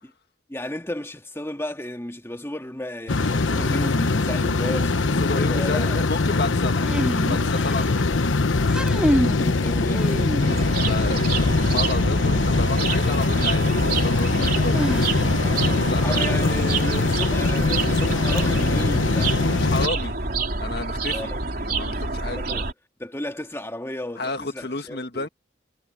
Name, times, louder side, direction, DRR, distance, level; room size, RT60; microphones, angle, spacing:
voice 1, 0.5-6.0 9.3-10.4 16.0-19.6 21.1-21.4 22.3-22.7 23.0-25.3, left 1 dB, 15° left, 1.9 m, -33 dB
sound 1, 3.1-19.9, left 3 dB, 90° left, 1.0 m, -22 dB
voice 2, 5.2-8.1 10.8-15.0 15.6-16.2 19.5-20.2 20.6-21.3 21.6-22.4 24.2-25.3, left 3 dB, 55° left, 1.7 m, -31 dB
sound 2, 6.8-8.0 8.6-9.5 9.9-10.8 12.8-12.9 14.7-15.6, equal, 5° right, 4.8 m, -26 dB
sound 3, 10.4-22.7, right 3 dB, 50° right, 3.9 m, -27 dB
head